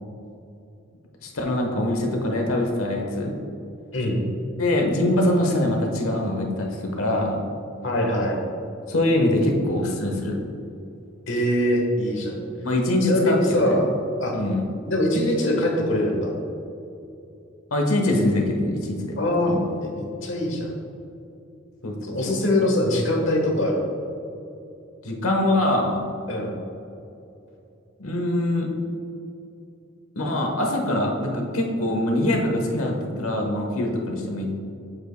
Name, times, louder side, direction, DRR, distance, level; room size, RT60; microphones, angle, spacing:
voice 1, 1.2-3.3 4.6-7.4 8.9-10.4 12.6-13.7 14.3-14.7 17.7-19.1 19.5-19.6 21.8-21.9 25.0-26.0 28.0-28.7 30.2-34.5, left 1 dB, 90° left, 1 dB, 1.1 m, -23 dB
voice 2, 3.9-4.2 7.8-8.4 11.3-12.4 13.0-13.9 14.2-14.3 14.9-16.3 19.2-20.7 22.0-23.9 26.3-26.6, left 1 dB, 60° left, 0 dB, 1.3 m, -23 dB
8.3 x 7.3 x 2.2 m, 2.7 s
head